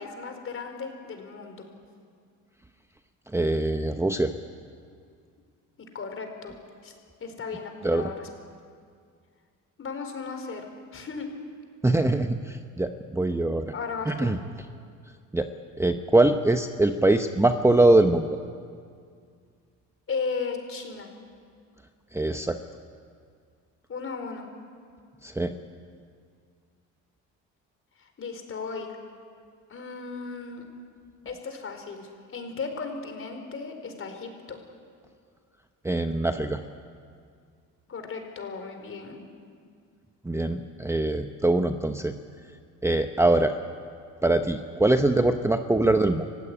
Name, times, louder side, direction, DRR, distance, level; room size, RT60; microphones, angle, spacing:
voice 1, 0.0-1.7 5.8-6.6 6.8-6.9 7.2-8.3 9.8-11.3 13.7-14.3 20.1-21.1 23.9-24.5 28.0-28.9 29.7-30.6 31.2-34.6 37.9-39.2, left 4 dB, 40° left, 5 dB, 4.7 m, -36 dB
voice 2, 3.3-4.3 7.8-8.1 11.8-13.7 14.1-14.4 15.3-15.5 15.8-18.4 22.1-22.6 25.2-25.5 35.8-36.6 40.2-42.1 42.8-43.5 44.2-46.3, right 2 dB, 10° right, 7 dB, 1.0 m, -23 dB
26.5 x 16.0 x 10.0 m, 2.2 s
cardioid pair, 105°, 34 cm